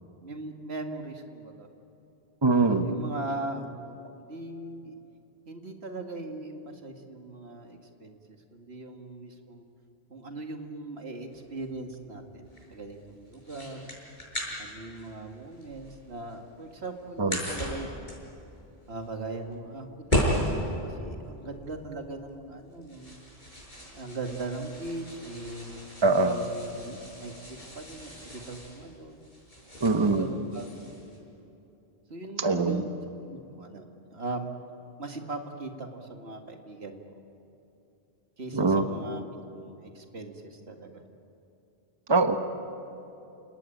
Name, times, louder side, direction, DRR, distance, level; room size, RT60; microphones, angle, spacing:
voice 1, 0.2-1.7 2.8-5.0 5.5-8.2 8.5-9.6 10.1-14.0 14.6-17.9 18.9-23.2 23.9-25.7 26.0-29.3 29.6-30.7 32.1-32.9 33.2-34.5 35.0-37.0 38.4-41.0, right 2 dB, 85° right, 4 dB, 2.3 m, -39 dB
voice 2, 2.4-2.9 17.2-17.4 26.0-26.4 29.8-30.3 32.4-32.8 38.5-38.8 42.1-42.4, right 3 dB, 25° right, 7 dB, 1.2 m, -23 dB
sound 1, 11.3-31.2, equal, 45° left, 6.7 m, -37 dB
29.5 x 18.5 x 9.1 m, 2.9 s
omnidirectional pair, 1.1 m